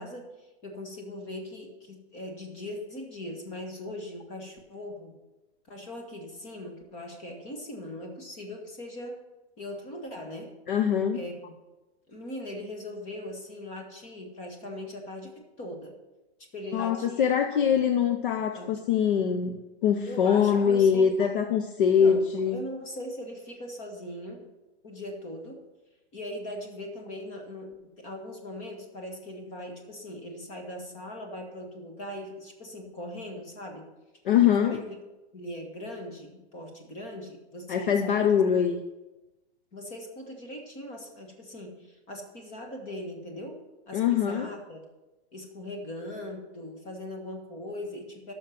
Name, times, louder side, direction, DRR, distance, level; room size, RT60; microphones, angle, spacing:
voice 1, 0.0-5.1 5.7-9.2 9.6-10.5 11.1-11.5 12.1-15.9 16.5-17.8 18.5-18.7 20.1-21.1 21.8-24.5 24.8-25.6 26.1-33.9 34.5-35.0 35.3-38.4 39.7-44.8 45.3-48.3, left 1 dB, 20° left, 3 dB, 1.5 m, -40 dB
voice 2, 10.7-11.2 16.7-22.6 34.3-34.8 37.7-38.8 43.9-44.5, left 7 dB, 50° left, 7 dB, 0.7 m, -23 dB
12.0 x 6.5 x 5.8 m, 1.1 s
supercardioid pair, 170°, 34 cm